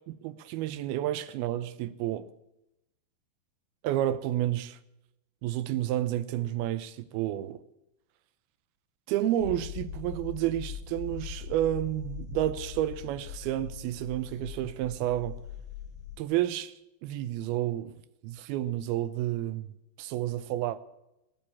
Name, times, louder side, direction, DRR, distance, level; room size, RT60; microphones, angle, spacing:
voice 1, 0.1-2.3 3.8-4.8 5.4-7.6 9.1-15.4 16.2-16.7 17.0-18.0 18.2-19.7 20.0-20.8, right 13 dB, 75° right, 2.5 m, -30 dB
sound 1, 9.4-16.2, left 8 dB, 65° left, 2.3 m, -41 dB
18.0 x 9.0 x 8.5 m
omnidirectional pair, 4.8 m